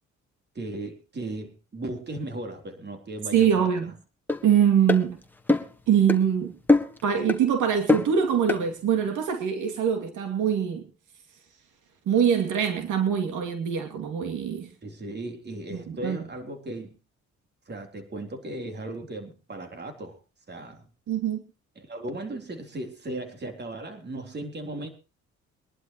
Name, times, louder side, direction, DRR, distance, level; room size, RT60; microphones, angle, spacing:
voice 1, 0.6-3.9 14.8-17.0 17.7-20.2 20.5-20.8 21.8-24.9, right 2 dB, 35° right, 5 dB, 3.7 m, -36 dB
voice 2, 3.3-3.9 4.4-5.2 5.9-6.5 7.0-10.9 12.1-14.7 15.7-16.2 21.1-21.4, right 8 dB, 80° right, 5 dB, 2.6 m, -23 dB
sound 1, 4.3-4.4 4.9-5.0 5.5-5.7 6.1-6.2 6.7-7.0 7.3-7.4 7.9-8.1 8.5-8.6, left 2 dB, 5° left, 1.6 m, -22 dB
23.5 x 11.5 x 3.1 m, 0.30 s
cardioid pair, 90°, 30 cm